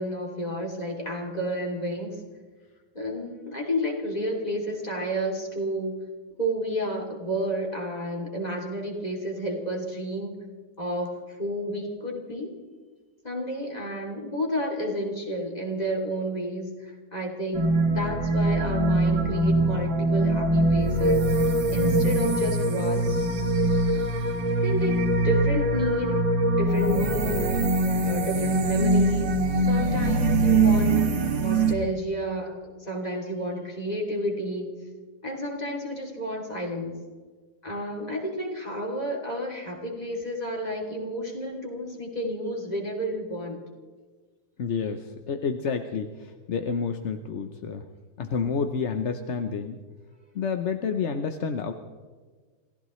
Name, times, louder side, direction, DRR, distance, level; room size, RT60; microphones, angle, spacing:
voice 1, 0.0-2.2 2.9-6.0 6.4-10.4 10.8-12.6 13.2-21.3 21.7-23.2 23.9-26.2 26.6-27.5 28.0-29.4 29.7-31.1 31.4-34.7 35.2-36.9 37.6-43.6, equal, 20° left, 0 dB, 3.0 m, -31 dB
sound 1, 17.5-31.7, right 2 dB, 90° right, 2.1 m, -23 dB
voice 2, 44.6-47.8 48.2-49.8 50.3-51.7, left 5 dB, 50° left, 6 dB, 0.9 m, -29 dB
28.0 x 15.5 x 3.2 m, 1.4 s
omnidirectional pair, 2.0 m